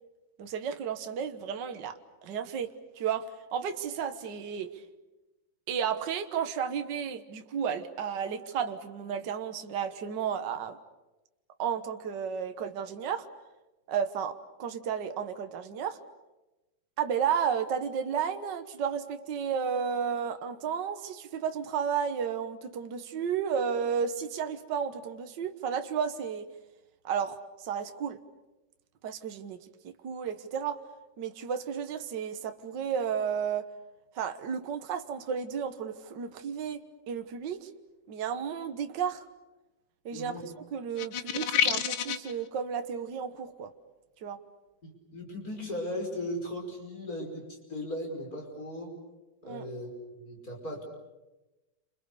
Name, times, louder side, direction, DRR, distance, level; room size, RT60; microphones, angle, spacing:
voice 1, 0.4-4.8 5.7-10.8 11.6-13.3 13.9-16.0 17.0-26.5 27.0-28.2 29.0-29.6 29.8-30.8 31.2-33.7 34.2-37.7 38.1-39.3 40.1-40.3 40.7-43.7 44.2-44.4 49.4-49.7, right 7 dB, 60° right, 8 dB, 1.8 m, -33 dB
voice 2, 40.1-40.4 44.8-49.0 49.4-50.8, left 1 dB, 40° left, 1 dB, 5.8 m, -37 dB
sound 1, 41.0-42.3, left 8 dB, 60° left, 1.7 m, -28 dB
29.0 x 26.5 x 6.8 m, 1.0 s
omnidirectional pair, 2.4 m